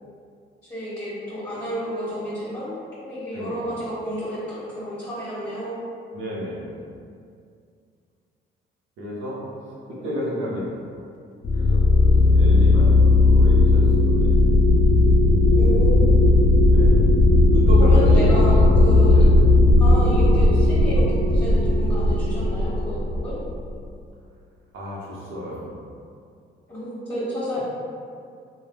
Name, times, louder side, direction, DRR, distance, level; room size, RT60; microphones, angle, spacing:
voice 1, 0.7-5.8 9.9-10.1 15.5-16.1 17.8-19.2 19.8-23.4 26.7-27.6, equal, 15° left, -12 dB, 1.2 m, -31 dB
voice 2, 3.3-3.7 6.1-6.8 9.0-9.4 9.9-10.9 11.5-14.4 15.5-15.7 16.6-17.2 17.5-18.7 19.1-19.3 24.7-25.7, left 1 dB, 75° right, -6 dB, 0.8 m, -31 dB
sound 1, 11.4-23.7, left 2 dB, 40° left, 0.4 m, -16 dB
3.2 x 2.3 x 2.2 m, 2.3 s
cardioid pair, 90°, 20 cm